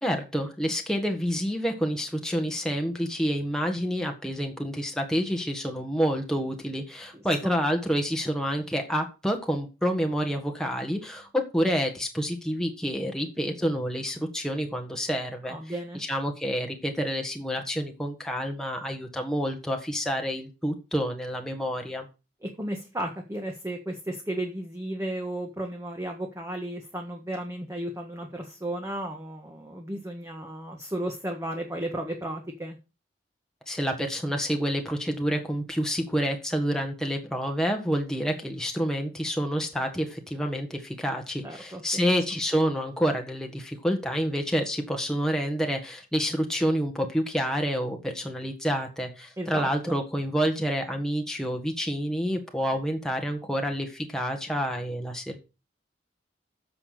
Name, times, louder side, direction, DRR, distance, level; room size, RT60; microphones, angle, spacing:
voice 1, 0.0-15.6 16.0-22.1 33.7-55.4, equal, 5° left, 2 dB, 1.5 m, -28 dB
voice 2, 7.1-7.5 15.5-16.0 22.4-32.8 41.4-42.1 49.4-49.9, right 1 dB, 15° right, 2 dB, 1.5 m, -34 dB
9.7 x 7.0 x 6.6 m, 0.31 s
head